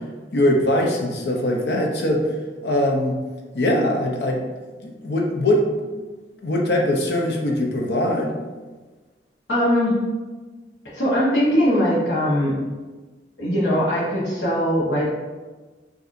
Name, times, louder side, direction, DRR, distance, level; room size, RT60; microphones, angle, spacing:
voice 1, 0.3-2.3 2.6-3.2 3.5-4.4 4.8-6.0 6.4-8.4, left 1 dB, 65° left, 1 dB, 0.6 m, -21 dB
voice 2, 9.5-10.0 10.9-12.6 13.4-15.1, equal, 80° left, -7 dB, 1.2 m, -20 dB
4.9 x 2.7 x 2.6 m, 1.3 s
head